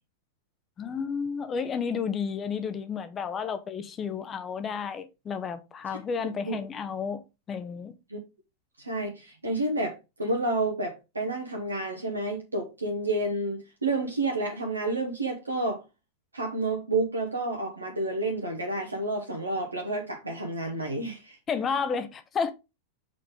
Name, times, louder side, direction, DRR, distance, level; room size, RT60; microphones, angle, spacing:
voice 1, 0.8-7.9 21.5-22.5, left 6 dB, 25° left, 0.7 m, -32 dB
voice 2, 6.2-6.6 8.1-8.2 8.8-15.8 16.3-21.4, right 2 dB, 80° right, 1.2 m, -30 dB
6.5 x 4.0 x 3.7 m
figure-of-eight pair, 90°, 0 cm